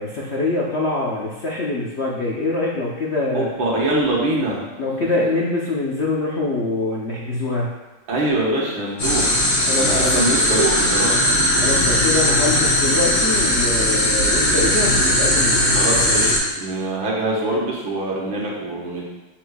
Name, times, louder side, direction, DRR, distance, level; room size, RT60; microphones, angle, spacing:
voice 1, 0.0-3.5 4.8-7.7 9.7-10.4 11.6-15.8, left 2 dB, 80° left, -4 dB, 0.6 m, -24 dB
voice 2, 3.3-4.7 8.1-9.4 9.8-11.1 15.8-16.3 16.6-19.1, right 2 dB, 70° right, -4 dB, 2.1 m, -23 dB
sound 1, 9.0-16.4, left 1 dB, 40° left, 2.5 m, -18 dB
7.5 x 6.3 x 2.3 m, 1.1 s
omnidirectional pair, 2.3 m